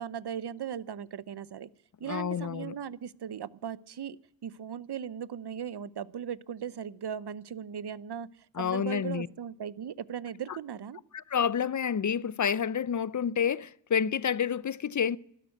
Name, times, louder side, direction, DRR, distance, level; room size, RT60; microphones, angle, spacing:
voice 1, 0.0-1.7 2.0-8.3 8.6-11.0, right 8 dB, 65° right, 0.7 m, -38 dB
voice 2, 2.1-2.8 8.5-9.3 10.5-10.6 11.1-15.2, left 7 dB, 45° left, 0.5 m, -29 dB
12.5 x 11.5 x 9.3 m
wide cardioid pair, 65°, 43 cm